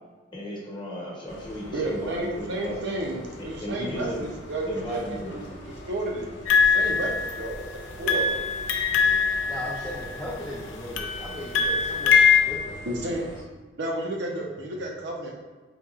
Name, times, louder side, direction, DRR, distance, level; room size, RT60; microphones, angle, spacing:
voice 1, 0.3-2.8 3.6-4.2 4.6-5.4, equal, 25° left, -5 dB, 1.0 m, -35 dB
sound 1, 1.3-13.4, equal, 65° left, 0.8 m, -43 dB
voice 2, 1.7-5.0 5.3-5.5 5.9-6.3 6.6-8.4 12.9-13.2 13.8-15.3, right 1 dB, 65° right, -1 dB, 0.6 m, -31 dB
sound 2, 6.5-7.6 8.1-10.3 11.0-12.4, left 6 dB, 85° left, 0.4 m, -22 dB
voice 3, 9.0-12.2 12.5-12.9, left 1 dB, ahead, -8 dB, 0.4 m, -37 dB
4.2 x 2.8 x 2.4 m, 1.3 s
head